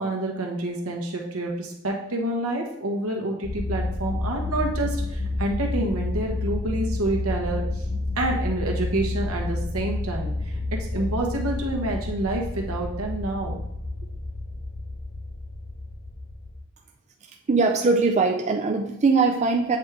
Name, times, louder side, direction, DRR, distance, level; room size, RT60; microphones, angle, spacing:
voice 1, 0.0-7.9 8.2-10.6 10.9-13.6, right 2 dB, 75° right, 0 dB, 1.2 m, -28 dB
sound 1, 3.4-16.6, left 2 dB, 45° left, 1.1 m, -30 dB
voice 2, 17.5-19.8, right 4 dB, 35° right, 3 dB, 0.4 m, -21 dB
8.1 x 3.5 x 3.5 m, 0.80 s
head